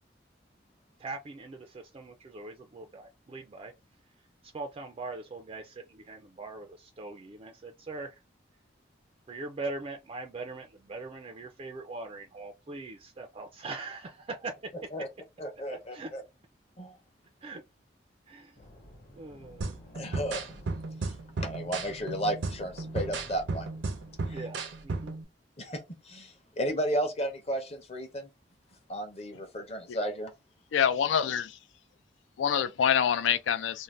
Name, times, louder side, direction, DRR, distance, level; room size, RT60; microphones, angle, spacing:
voice 1, 1.0-3.7 4.2-8.2 9.3-14.7 15.7-16.1 17.4-17.6 18.3-18.7 19.1-19.9 24.3-25.1, right 3 dB, 30° right, 0.3 m, -41 dB
voice 2, 15.4-16.2 16.8-17.0 19.9-20.4 21.4-23.7 24.3-24.4 25.6-28.3 28.9-30.3, equal, 35° left, 0.7 m, -33 dB
sound 1, 18.6-24.2, left 1 dB, 50° left, 1.0 m, -53 dB
sound 2, 19.6-25.2, right 3 dB, 80° right, 0.6 m, -35 dB
voice 3, 30.7-31.6 32.4-33.8, left 8 dB, 90° left, 0.3 m, -26 dB
2.6 x 2.1 x 3.1 m
head